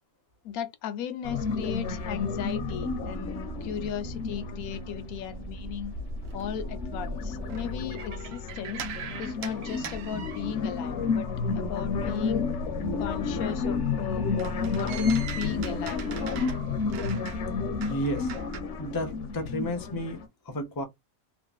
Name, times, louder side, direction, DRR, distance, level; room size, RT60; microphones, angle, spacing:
voice 1, 0.4-5.9 6.3-8.8 9.2-11.3 11.5-12.5 13.0-14.3 14.7-15.0 15.3-16.3, left 9 dB, 80° left, 1.1 m, -36 dB
sound 1, 1.2-5.4 5.9-20.2, left 4 dB, 60° left, 0.9 m, -31 dB
sound 2, 2.5-7.7, right 2 dB, 55° right, 0.7 m, -40 dB
sound 3, 5.9-10.9 11.1-18.6, right 4 dB, 70° right, 1.0 m, -41 dB
voice 2, 17.8-18.3 18.8-20.2 20.5-20.8, equal, 25° left, 0.4 m, -32 dB
3.0 x 2.6 x 2.3 m
omnidirectional pair, 1.5 m